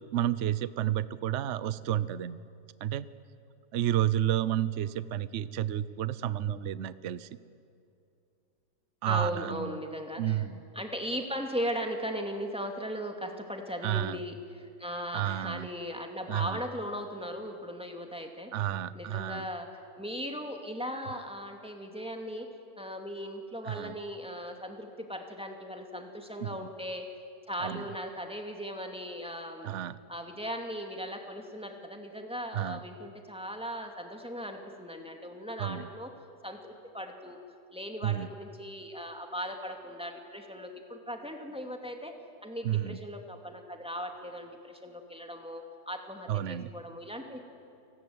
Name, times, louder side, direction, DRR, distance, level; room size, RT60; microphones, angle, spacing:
voice 1, 0.0-2.4 2.8-3.1 3.7-7.3 9.0-9.8 10.2-10.6 13.8-14.2 15.1-15.7 16.3-16.6 18.5-19.5 23.6-24.0 26.4-26.6 27.6-27.8 29.6-30.0 32.5-32.8 35.6-35.9 38.0-38.3 42.6-43.0 46.3-46.7, right 11 dB, 55° right, 16 dB, 0.8 m, -31 dB
voice 2, 9.1-10.4 10.7-18.5 18.9-19.7 20.0-22.5 22.8-27.1 27.5-29.7 30.1-36.1 36.4-37.4 37.7-42.1 42.4-47.4, equal, 5° right, 3 dB, 2.5 m, -38 dB
29.5 x 19.0 x 9.6 m, 2.6 s
omnidirectional pair, 1.9 m